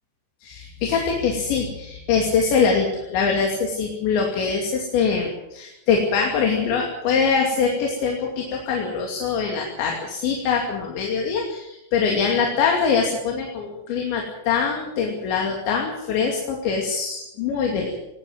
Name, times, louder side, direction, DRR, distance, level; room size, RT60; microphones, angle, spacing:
voice 1, 0.4-17.9, left 5 dB, 80° left, 0 dB, 4.9 m, -23 dB
19.5 x 19.0 x 7.9 m, 0.90 s
omnidirectional pair, 5.1 m